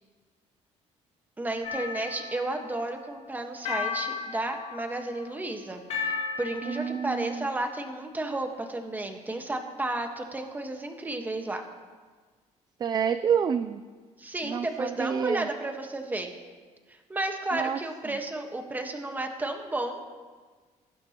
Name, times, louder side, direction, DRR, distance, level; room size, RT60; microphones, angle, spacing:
voice 1, 1.4-11.6 14.2-16.3 16.9-20.0, right 2 dB, 15° right, 4 dB, 1.4 m, -32 dB
sound 1, 1.6-2.9 3.6-5.2 5.9-7.4, left 5 dB, 60° left, 2.1 m, -35 dB
voice 2, 6.6-7.5 12.8-13.8 14.4-15.5 17.5-17.8, right 7 dB, 30° right, 11 dB, 0.4 m, -28 dB
22.0 x 11.5 x 3.0 m, 1.4 s
cardioid pair, 125°, 13 cm